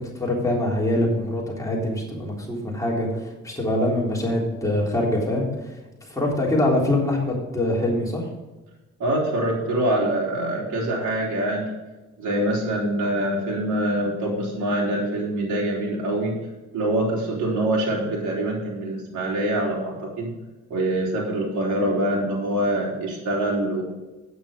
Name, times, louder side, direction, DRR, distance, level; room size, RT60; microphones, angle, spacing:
voice 1, 0.0-5.5 6.1-8.3, left 1 dB, 10° left, -3 dB, 3.6 m, -24 dB
voice 2, 9.0-11.7 12.2-16.3 16.7-20.3 20.7-23.8, right 1 dB, 75° right, -4 dB, 3.5 m, -24 dB
9.3 x 8.8 x 5.3 m, 1.1 s
cardioid pair, 90°, 30 cm